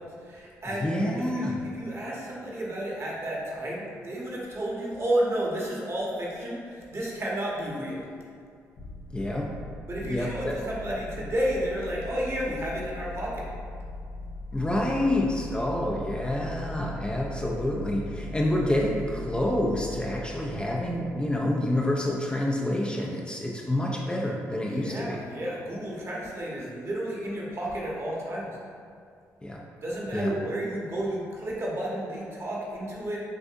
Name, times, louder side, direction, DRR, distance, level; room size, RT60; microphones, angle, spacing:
voice 1, 0.0-8.0 9.9-13.5 24.6-28.6 29.8-33.2, right 1 dB, 45° right, -4 dB, 1.2 m, -32 dB
voice 2, 0.7-1.6 9.1-9.5 10.0-10.6 14.5-25.2 29.4-29.6 30.1-30.3, left 1 dB, 15° left, -2 dB, 0.5 m, -28 dB
sound 1, 8.8-22.1, left 2 dB, 70° left, 0.7 m, -40 dB
6.1 x 2.6 x 2.5 m, 2.3 s
supercardioid pair, 60°, 7 cm